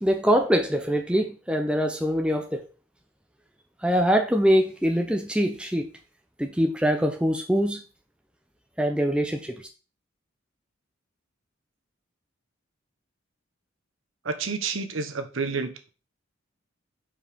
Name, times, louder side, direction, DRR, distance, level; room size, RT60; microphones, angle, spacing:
voice 1, 0.0-2.6 3.8-5.9 6.4-7.8 8.8-9.7, equal, 5° right, 0.6 m, -23 dB
voice 2, 14.2-15.7, right 4 dB, 70° right, 0.9 m, -29 dB
5.3 x 4.8 x 5.1 m
head